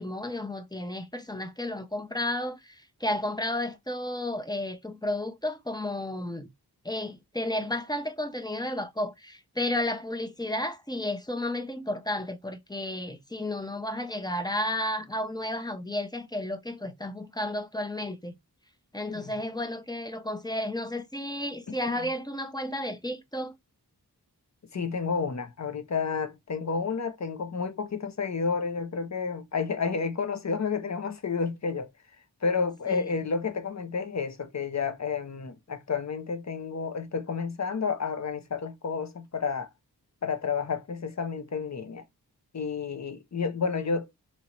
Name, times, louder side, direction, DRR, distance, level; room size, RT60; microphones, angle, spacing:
voice 1, 0.0-6.5 6.8-18.3 18.9-23.5 32.9-33.1, left 1 dB, 10° left, 0.5 m, -32 dB
voice 2, 24.7-31.9 32.4-39.7 40.2-42.0 42.5-44.1, left 5 dB, 45° left, 0.7 m, -30 dB
4.0 x 3.1 x 2.9 m
wide cardioid pair, 65°, 39 cm